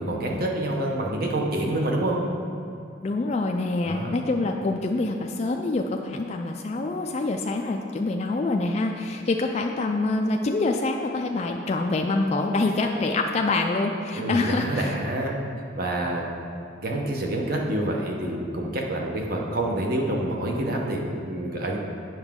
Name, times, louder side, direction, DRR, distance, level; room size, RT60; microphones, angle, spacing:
voice 1, 0.0-2.2 3.8-4.1 14.1-15.3 15.8-16.2 16.8-21.8, right 1 dB, 50° right, 0 dB, 0.9 m, -27 dB
voice 2, 3.0-15.0, left 2 dB, 35° left, 2 dB, 0.3 m, -26 dB
8.0 x 5.8 x 3.6 m, 2.6 s
head